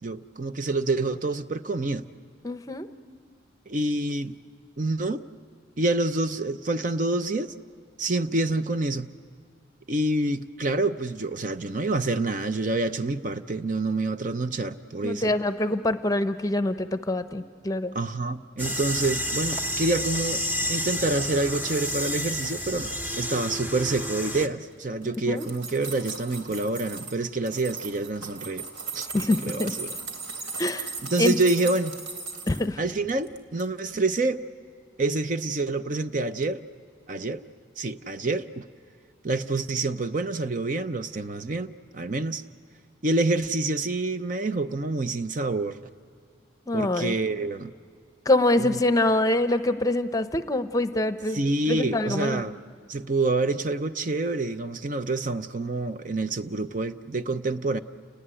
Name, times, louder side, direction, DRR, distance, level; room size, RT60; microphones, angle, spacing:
voice 1, 0.0-2.0 3.7-4.4 4.8-5.2 5.8-7.5 8.0-9.1 9.9-15.3 17.9-20.4 20.7-28.7 28.9-29.9 31.0-31.9 32.8-34.4 35.0-36.6 37.1-37.4 37.8-38.6 39.2-42.4 43.0-45.8 46.7-47.7 48.6-48.8 51.3-52.6 52.9-57.8, right 2 dB, 40° right, 10 dB, 0.6 m, -27 dB
voice 2, 2.4-2.9 15.0-17.9 25.2-25.5 29.1-29.7 30.6-30.9 31.2-31.4 32.5-32.8 46.7-47.1 48.3-51.4 51.7-52.5, left 1 dB, 20° left, 10 dB, 0.7 m, -25 dB
sound 1, 18.6-24.5, left 1 dB, 10° right, 0.9 m, -30 dB
sound 2, 25.0-27.2 27.5-32.7 33.1-33.6 33.9-34.0, right 4 dB, 85° right, 3.1 m, -37 dB
29.5 x 19.0 x 10.0 m, 2.1 s
head